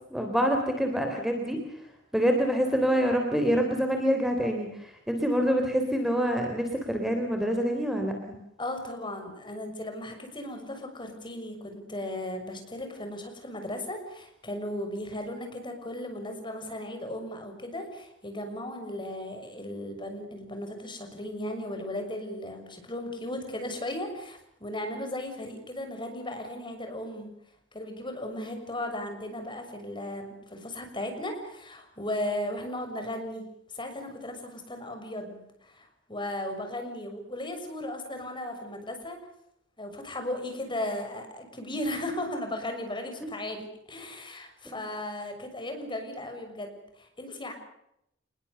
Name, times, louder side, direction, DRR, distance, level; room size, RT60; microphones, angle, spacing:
voice 1, 0.1-1.6 2.1-8.3 44.7-44.8, equal, ahead, 3 dB, 3.5 m, -26 dB
voice 2, 8.6-27.3 27.7-33.5 33.7-39.2 39.8-47.5, left 1 dB, 25° left, 5 dB, 6.7 m, -36 dB
27.5 x 21.0 x 6.9 m, 0.78 s
head